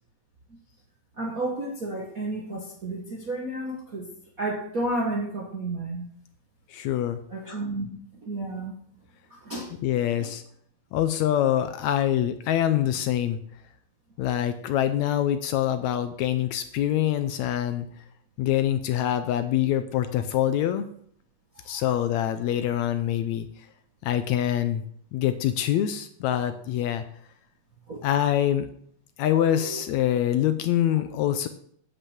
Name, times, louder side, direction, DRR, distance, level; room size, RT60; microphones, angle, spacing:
voice 1, 1.2-4.1 4.4-6.1 7.3-7.9 8.2-8.7 9.3-9.7 10.2-10.3 14.4-14.5 21.5-21.8 27.9-28.1 29.2-29.8, right 2 dB, 50° right, -1 dB, 1.0 m, -32 dB
voice 2, 6.7-7.2 9.8-10.4 10.9-13.4 14.2-17.9 18.4-20.9 21.7-23.5 24.0-24.8 25.1-27.0 28.0-28.7 29.2-31.5, left 11 dB, 75° left, 10 dB, 1.8 m, -25 dB
9.8 x 5.6 x 7.2 m, 0.64 s
omnidirectional pair, 3.6 m